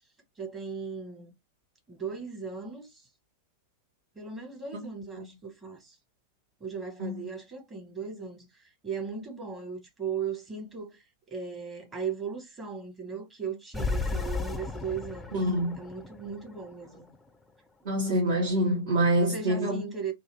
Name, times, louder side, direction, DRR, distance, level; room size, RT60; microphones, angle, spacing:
voice 1, 0.4-1.3 1.9-3.1 4.1-6.0 6.6-15.3 15.7-17.1 19.2-20.1, right 6 dB, 20° right, 1.2 m, -37 dB
sound 1, 13.7-17.2, left 3 dB, 5° left, 0.5 m, -34 dB
voice 2, 15.3-15.8 17.8-19.8, right 1 dB, 55° right, 1.1 m, -26 dB
2.7 x 2.4 x 3.3 m
figure-of-eight pair, 90°, 0 cm